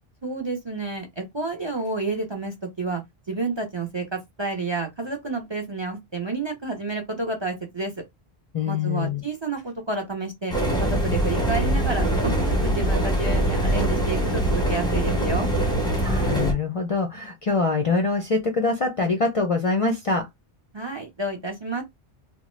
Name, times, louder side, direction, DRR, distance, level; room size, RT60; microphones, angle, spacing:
voice 1, 0.2-7.9 8.6-10.5 10.8-15.5 20.7-21.8, right 3 dB, 35° right, 0.5 m, -30 dB
voice 2, 8.5-9.2 16.0-20.3, left 3 dB, 45° left, 0.5 m, -24 dB
sound 1, 10.5-16.5, right 1 dB, 5° left, 0.6 m, -23 dB
2.9 x 2.1 x 3.0 m
omnidirectional pair, 1.0 m